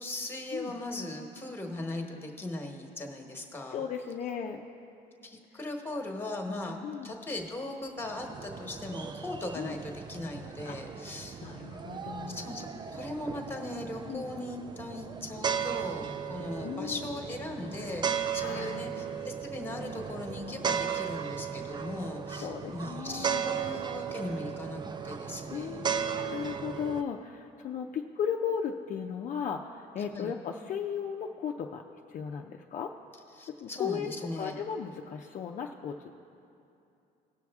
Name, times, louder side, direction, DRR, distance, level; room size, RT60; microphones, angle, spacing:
voice 1, 0.0-3.8 5.2-11.5 12.3-25.8 30.1-30.3 33.3-34.6, left 2 dB, 15° left, 2 dB, 1.2 m, -39 dB
voice 2, 3.7-4.6 6.8-7.1 9.5-9.7 10.6-10.8 11.4-12.5 14.1-14.2 16.6-17.1 18.4-18.9 22.4-23.4 25.5-31.8 32.1-32.9 33.5-36.1, left 7 dB, 50° left, 2 dB, 0.5 m, -36 dB
sound 1, 8.0-27.0, right 7 dB, 25° right, 0.4 m, -36 dB
17.5 x 6.2 x 3.6 m, 2.7 s
cardioid pair, 110°, 17 cm